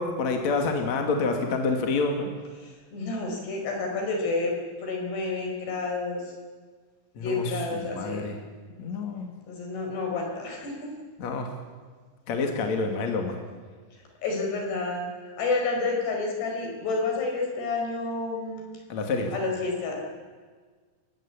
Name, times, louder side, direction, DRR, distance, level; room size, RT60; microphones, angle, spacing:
voice 1, 0.0-2.3 7.2-8.4 8.8-9.3 11.2-11.5 12.3-13.3 18.9-19.3, left 3 dB, 45° left, 3 dB, 3.0 m, -28 dB
voice 2, 2.6-6.2 7.2-8.3 9.5-10.7 14.2-15.1 15.4-18.7 19.3-20.0, left 3 dB, 70° left, 1 dB, 6.9 m, -29 dB
29.5 x 15.5 x 8.6 m, 1.5 s
omnidirectional pair, 5.0 m